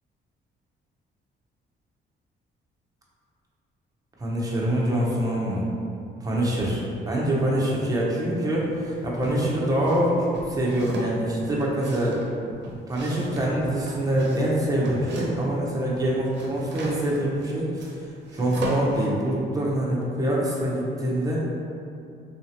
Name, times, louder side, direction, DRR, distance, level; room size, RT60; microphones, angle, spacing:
voice 1, 4.2-5.7 6.2-12.2 12.5-17.9 18.3-21.4, right 1 dB, 20° right, -5 dB, 0.7 m, -25 dB
sound 1, 8.7-9.4 9.8-15.6 15.9-19.1, right 1 dB, 60° right, 0.7 m, -36 dB
3.1 x 2.6 x 2.9 m, 2.5 s
cardioid pair, 90°, 20 cm